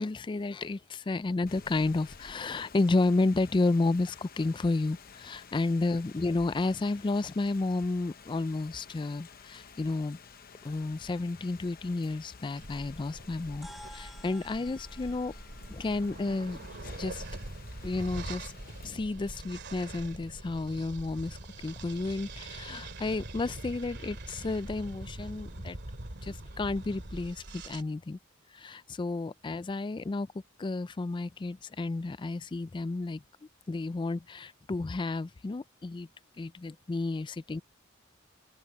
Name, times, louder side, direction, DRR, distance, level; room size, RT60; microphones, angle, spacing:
voice 1, 0.0-10.2 10.6-15.3 15.7-16.6 17.0-17.2 17.8-18.5 18.8-21.4 21.6-25.8 26.2-28.2 28.5-30.3 30.6-33.2 33.7-36.1 36.4-37.6, left 3 dB, 25° left, 0.3 m, -31 dB
Rain, 1.5-18.9, left 5 dB, 45° left, 0.9 m, -52 dB
sound 1, 12.6-27.8, right 2 dB, 60° right, 2.5 m, -43 dB
sound 2, 13.6-18.2, equal, ahead, 1.5 m, -54 dB
open air
head